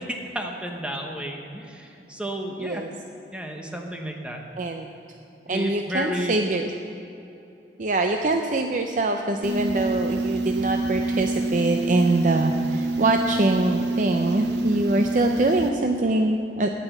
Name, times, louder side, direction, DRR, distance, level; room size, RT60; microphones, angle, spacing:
voice 1, 0.0-2.8 3.3-4.4 5.5-6.4, equal, 5° right, 2 dB, 1.0 m, -32 dB
voice 2, 4.6-4.9 5.5-6.7 7.8-16.7, right 2 dB, 45° right, 4 dB, 0.5 m, -24 dB
sound 1, 9.4-15.7, right 2 dB, 75° right, 0.7 m, -26 dB
9.5 x 9.3 x 8.0 m, 2.9 s
head